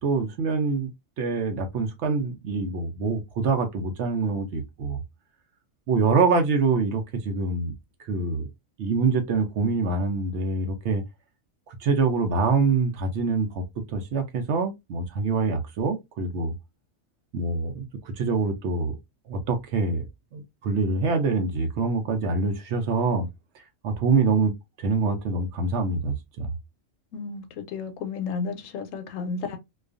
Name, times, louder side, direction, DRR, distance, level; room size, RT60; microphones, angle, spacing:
voice 1, 0.0-0.9 1.2-5.0 5.9-7.7 8.1-8.5 8.8-11.0 11.7-16.5 17.3-19.0 19.3-20.1 20.3-23.3 23.8-24.5 24.8-26.5, right 4 dB, 65° right, 0.8 m, -25 dB
voice 2, 27.1-29.6, left 5 dB, 75° left, 0.9 m, -32 dB
2.3 x 2.3 x 2.4 m
omnidirectional pair, 1.4 m